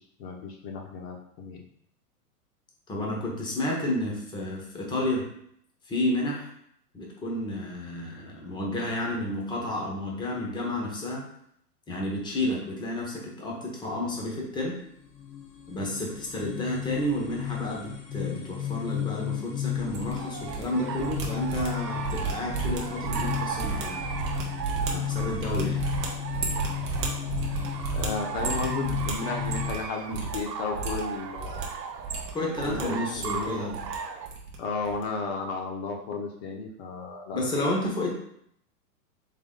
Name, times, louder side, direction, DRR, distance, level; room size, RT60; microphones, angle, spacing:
voice 1, 0.2-1.6 27.9-31.7 32.7-33.8 34.6-37.4, left 4 dB, 40° left, 1 dB, 0.9 m, -33 dB
voice 2, 2.9-5.3 5.9-6.5 6.9-11.2 11.9-14.8 15.7-24.0 24.8-25.8 32.3-33.8 37.3-38.2, left 1 dB, 10° left, -1 dB, 0.8 m, -31 dB
sound 1, 14.8-29.7, left 12 dB, 90° left, 1.1 m, -35 dB
sound 2, 19.7-20.6 20.9-29.8 30.1-30.4 30.7-31.6 32.0-32.8 33.1-33.9 34.2-34.6 34.8-35.0, right 4 dB, 20° right, 0.4 m, -33 dB
sound 3, 20.2-34.3, right 6 dB, 90° right, 0.7 m, -37 dB
3.7 x 3.5 x 3.7 m, 0.71 s
hypercardioid pair, 125°, 48 cm